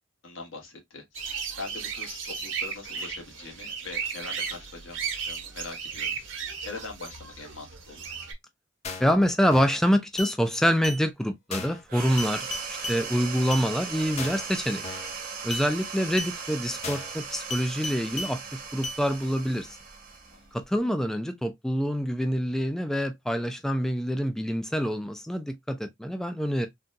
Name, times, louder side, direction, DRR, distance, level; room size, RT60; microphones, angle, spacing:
voice 1, 0.2-1.2 1.6-6.2 6.6-8.2 20.3-20.5, left 4 dB, 85° left, 1.3 m, -42 dB
sound 1, 1.1-8.3, right 6 dB, 70° right, 1.0 m, -35 dB
sound 2, 8.8-9.1 9.5-9.8 10.2-10.3 10.8-11.0 11.5-11.8 12.2-13.0 13.5-13.7 14.2-14.5 14.8-15.1 15.5-15.7 16.2-16.3 16.8-17.1 17.5-18.3 18.8-19.0, left 2 dB, 35° left, 0.6 m, -35 dB
voice 2, 9.0-14.8 15.4-19.8 20.5-26.7, equal, 5° left, 0.3 m, -26 dB
sound 3, 11.9-20.8, right 5 dB, 50° right, 0.8 m, -38 dB
3.7 x 2.3 x 2.6 m
head